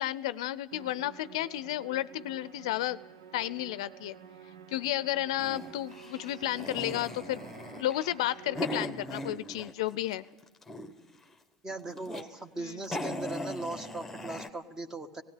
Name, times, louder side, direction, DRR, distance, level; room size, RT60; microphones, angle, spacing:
voice 1, 0.0-3.0 3.3-4.2 4.7-7.4 7.8-10.2 12.6-12.8, left 14 dB, 75° left, 17 dB, 0.6 m, -32 dB
Musical instrument, 0.7-9.2, right 7 dB, 85° right, 1.1 m, -50 dB
sound 1, 5.4-10.0 10.3-11.1 11.7-12.3 12.6-12.7 12.8-14.5, left 1 dB, 5° left, 1.3 m, -39 dB
voice 2, 11.6-15.2, right 2 dB, 15° right, 9 dB, 1.5 m, -39 dB
18.5 x 16.5 x 9.0 m, 1.1 s
hypercardioid pair, 105°, 3 cm